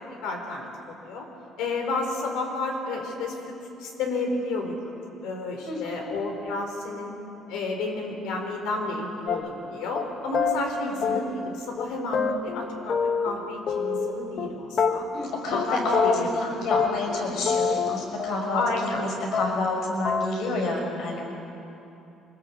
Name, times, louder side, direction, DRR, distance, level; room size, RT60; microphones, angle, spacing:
voice 1, 0.1-1.3 1.6-3.4 3.8-4.7 5.2-7.1 7.5-15.1 15.5-17.3 18.5-19.1, left 3 dB, 90° left, 3 dB, 4.3 m, -31 dB
voice 2, 5.7-6.0 10.8-11.2 15.1-21.2, left 2 dB, 70° left, 1 dB, 5.9 m, -29 dB
sound 1, 9.3-9.7 10.0-10.1 10.3-10.6 11.0-11.5 11.8-11.9 12.1-13.4 13.7-14.5 14.8-15.3 15.5-15.7 15.9-16.4 16.7-17.2 17.5-19.0 19.3-19.8 20.1-20.3, left 5 dB, 45° left, 1.4 m, -26 dB
24.5 x 19.5 x 8.4 m, 2.9 s
cardioid pair, 135°, 0 cm